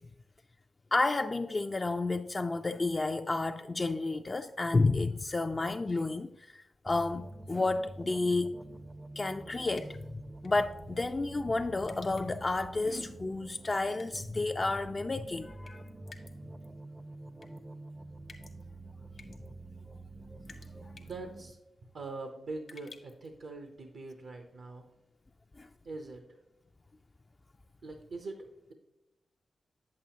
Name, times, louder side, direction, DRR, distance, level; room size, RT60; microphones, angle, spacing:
voice 1, 0.9-8.5 9.2-15.9 20.8-20.9 25.6-25.7, left 3 dB, 35° left, 0.3 m, -31 dB
sound 1, 6.9-21.5, right 2 dB, 25° right, 0.5 m, -47 dB
sound 2, 9.8-10.0 10.4-10.8 11.8-12.5 13.9-14.3 15.7-16.3 16.6-16.7 17.4-17.6 18.3-18.6 19.1-19.5 20.5-20.7 21.0-21.2 22.7-23.3, left 4 dB, 65° left, 1.1 m, -53 dB
voice 2, 21.0-21.6 21.9-24.9 25.8-26.3 27.8-28.7, right 3 dB, 75° right, 0.7 m, -43 dB
8.3 x 7.4 x 2.8 m
cardioid pair, 45°, 0 cm